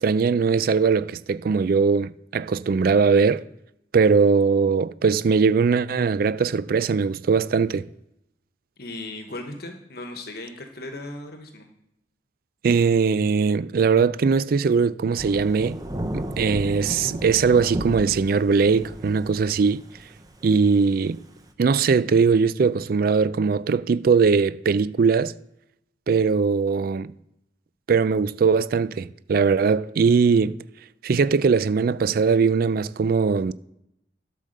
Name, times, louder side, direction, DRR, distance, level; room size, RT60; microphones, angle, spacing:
voice 1, 0.0-3.5 3.9-7.9 12.6-15.8 16.1-19.8 20.4-21.2 21.6-25.3 26.1-27.1 27.9-30.6 31.0-33.5, right 5 dB, 55° right, 0.4 m, -20 dB
voice 2, 8.8-11.7, left 2 dB, 60° left, 1.2 m, -37 dB
Thunder / Rain, 15.2-21.5, right 1 dB, 20° right, 0.8 m, -33 dB
12.0 x 5.0 x 6.5 m
head